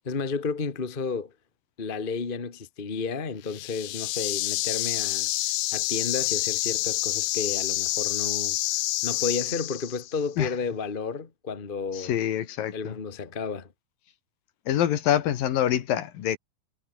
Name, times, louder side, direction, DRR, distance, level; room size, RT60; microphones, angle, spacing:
voice 1, 0.0-1.3 1.8-5.3 5.7-8.6 9.0-12.1 12.7-13.7, left 5 dB, 40° left, 0.7 m, -32 dB
sound 1, 3.5-10.2, left 19 dB, 85° left, 2.7 m, -28 dB
voice 2, 12.0-12.9 14.7-16.4, left 11 dB, 70° left, 3.4 m, -25 dB
omnidirectional pair, 4.4 m